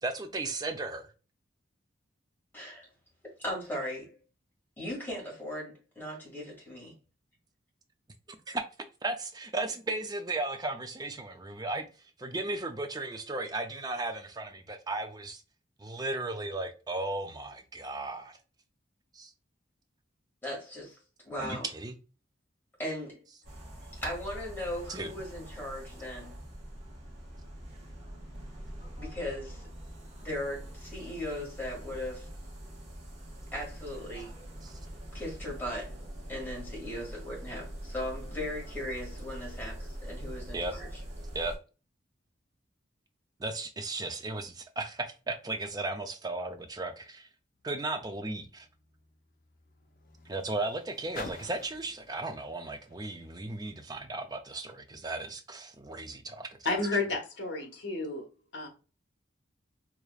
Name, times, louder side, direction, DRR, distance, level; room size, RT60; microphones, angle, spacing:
voice 1, 0.0-1.1 8.5-8.6 9.0-11.9 12.2-15.4 15.8-18.4 19.1-19.3 21.4-22.0 24.9-25.2 34.6-34.8 40.5-40.7 41.3-41.5 43.4-47.3 47.6-48.7 50.3-56.6, right 2 dB, 20° right, 0.5 m, -35 dB
voice 2, 2.5-2.9 3.4-4.2 4.8-6.9 20.4-21.0 21.2-21.7 22.8-23.3 24.0-26.4 29.0-29.6 30.2-32.3 33.5-34.3 35.1-35.9 36.3-40.9, left 1 dB, 10° left, 2.0 m, -38 dB
sound 1, 23.4-41.6, right 1 dB, 40° right, 1.7 m, -44 dB
Car, 47.5-54.1 54.9-55.0, left 3 dB, 45° left, 0.7 m, -51 dB
voice 3, 56.6-58.2 58.5-58.7, left 3 dB, 65° left, 1.2 m, -31 dB
4.7 x 3.0 x 2.4 m
head